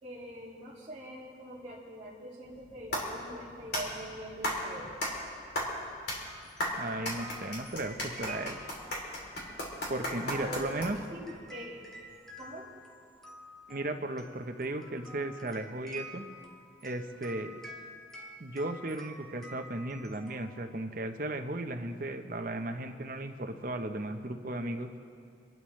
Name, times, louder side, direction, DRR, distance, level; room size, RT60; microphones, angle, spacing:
voice 1, 0.0-4.9 10.3-10.7 11.1-11.8 12.4-12.7, equal, 30° right, -9 dB, 2.2 m, -43 dB
sound 1, 2.4-11.2, equal, 70° left, 3.3 m, -36 dB
sound 2, 6.2-21.0, equal, ahead, 1.3 m, -50 dB
voice 2, 6.8-8.6 9.9-11.0 13.7-16.2 16.8-17.6 18.4-25.0, right 1 dB, 50° right, 6 dB, 0.8 m, -36 dB
27.0 x 12.0 x 3.2 m, 2.3 s
head